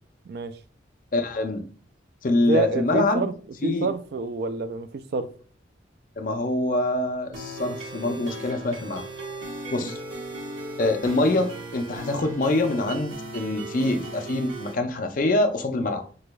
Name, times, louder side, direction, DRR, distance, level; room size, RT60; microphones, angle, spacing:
voice 1, 1.1-1.7 2.2-3.3 3.6-3.9 6.2-9.0 9.7-10.0 10.8-16.0, left 2 dB, 45° left, 0.5 m, -25 dB
voice 2, 2.4-3.3 3.6-5.3 9.8-9.9, right 3 dB, 55° right, 0.3 m, -27 dB
sound 1, 7.3-14.7, right 2 dB, 85° right, 1.2 m, -37 dB
4.0 x 3.1 x 2.2 m
head